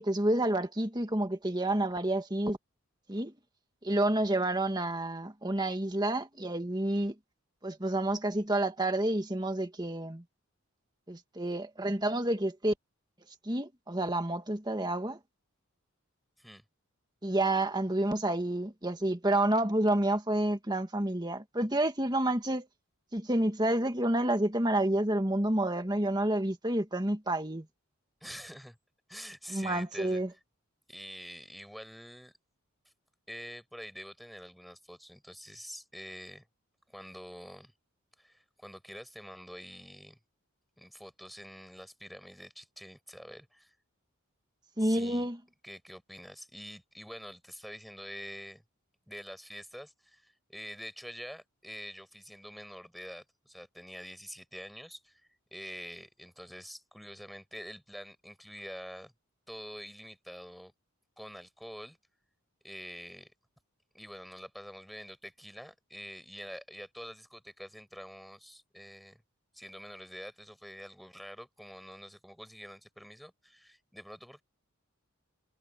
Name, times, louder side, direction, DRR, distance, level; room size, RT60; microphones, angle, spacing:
voice 1, 0.0-2.6 3.1-3.3 3.8-7.1 7.6-10.2 11.1-12.7 13.4-15.2 17.2-22.7 23.1-27.7 29.5-30.3 44.8-45.4, right 1 dB, 20° right, 1.8 m, -29 dB
voice 2, 28.2-28.8 29.1-30.2 30.9-32.3 33.3-36.5 36.9-37.7 38.2-40.2 40.8-43.7 44.8-45.3 45.6-48.6 49.1-55.2 55.5-59.1 59.5-60.7 61.2-62.0 62.6-63.3 63.9-69.2 69.5-74.4, equal, ahead, 7.8 m, -46 dB
head